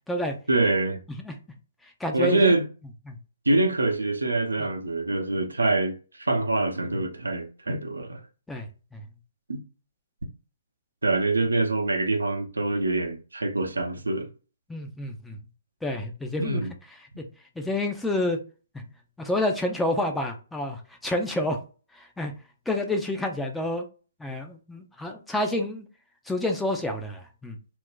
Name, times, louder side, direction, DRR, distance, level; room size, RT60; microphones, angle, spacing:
voice 1, 0.5-1.0 2.1-2.7 3.5-8.2 9.5-9.6 11.0-14.3 16.4-16.7, right 2 dB, 85° right, 0.6 m, -25 dB
voice 2, 2.0-2.5 3.1-3.2 8.5-8.7 8.9-9.0 14.7-15.4 15.8-16.6 17.6-18.4 19.2-21.6 22.0-22.3 22.7-23.9 24.2-25.9 26.3-27.6, left 1 dB, 5° left, 0.5 m, -28 dB
2.5 x 2.2 x 3.7 m
figure-of-eight pair, 135°, 0 cm